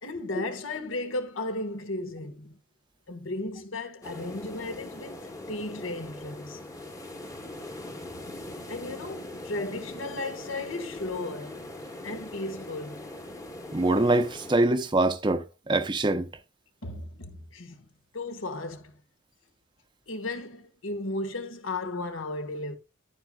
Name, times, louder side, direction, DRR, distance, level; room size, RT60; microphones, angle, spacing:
voice 1, 0.0-2.6 3.1-5.2 5.5-6.6 8.7-11.7 12.0-13.1 16.8-17.8 18.1-19.0 20.1-22.8, left 2 dB, 75° left, 1.6 m, -35 dB
sound 1, 4.0-14.6, left 1 dB, 15° left, 1.1 m, -41 dB
voice 2, 13.7-16.3, right 2 dB, 25° right, 0.7 m, -24 dB
11.5 x 9.2 x 2.4 m
head